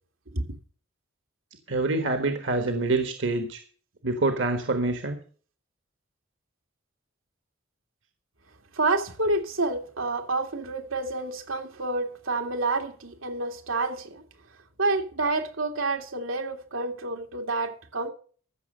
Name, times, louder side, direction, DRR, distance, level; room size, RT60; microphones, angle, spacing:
voice 1, 1.7-3.6 4.0-5.2, right 2 dB, 65° right, 1.4 m, -26 dB
voice 2, 8.7-14.2 14.8-18.1, right 2 dB, 90° right, 2.3 m, -28 dB
14.5 x 7.0 x 6.4 m
head